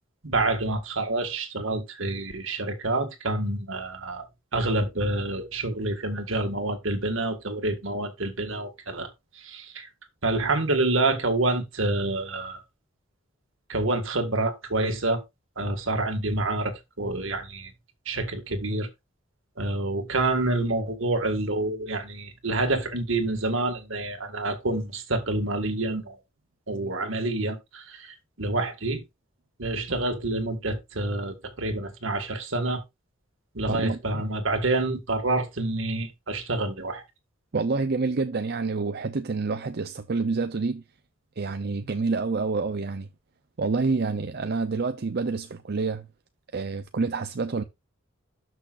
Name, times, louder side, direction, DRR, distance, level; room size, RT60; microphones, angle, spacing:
voice 1, 0.2-4.3 4.5-9.1 9.4-9.9 10.2-12.6 13.7-15.2 15.6-17.7 18.1-18.9 19.6-26.2 26.7-29.0 29.6-32.8 33.5-37.0, right 2 dB, 70° right, 2.0 m, -27 dB
voice 2, 33.7-34.2 37.5-40.8 41.4-43.1 43.6-46.1 46.5-47.6, right 4 dB, 50° right, 0.6 m, -28 dB
12.5 x 6.2 x 2.5 m
head